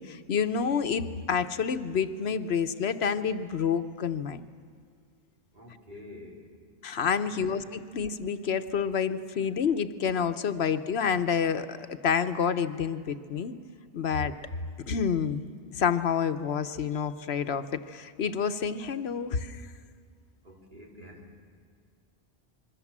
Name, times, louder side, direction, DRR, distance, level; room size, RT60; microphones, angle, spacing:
voice 1, 0.0-4.4 6.8-13.6 13.9-14.3 14.9-15.4 15.7-19.6, left 6 dB, 85° left, 10 dB, 1.2 m, -28 dB
voice 2, 5.5-6.5 7.3-7.6 9.4-9.5 20.4-21.4, left 1 dB, 50° right, -2 dB, 4.4 m, -48 dB
26.5 x 22.0 x 7.4 m, 2.2 s
omnidirectional pair, 1.0 m